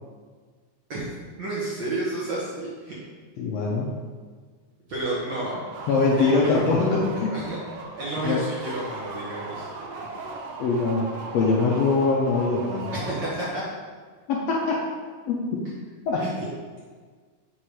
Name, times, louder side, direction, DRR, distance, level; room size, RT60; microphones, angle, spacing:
voice 1, 1.4-2.9 4.9-5.5 6.2-6.6 7.3-7.6 8.0-9.7 12.9-13.6 16.2-16.5, right 2 dB, 50° right, -8 dB, 1.5 m, -31 dB
voice 2, 3.4-3.9 5.9-7.3 8.2-8.4 10.0-10.1 10.6-12.9 14.3-14.8 15.3-15.4 16.1-16.2, left 3 dB, 75° left, -2 dB, 1.7 m, -23 dB
sound 1, 5.3-13.6, right 3 dB, 75° right, 1.5 m, -38 dB
7.6 x 3.7 x 4.7 m, 1.5 s
omnidirectional pair, 3.5 m